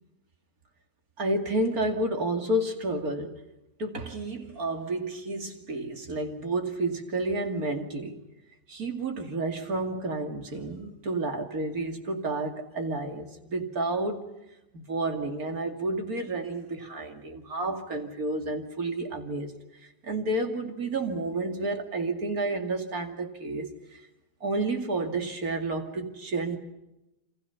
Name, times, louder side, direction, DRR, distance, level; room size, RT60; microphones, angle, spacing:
voice 1, 1.2-3.4 3.8-8.2 8.7-14.3 14.7-19.5 20.0-24.0 24.4-26.6, right 2 dB, 55° right, 5 dB, 2.8 m, -30 dB
28.0 x 26.5 x 5.7 m, 0.94 s
omnidirectional pair, 1.9 m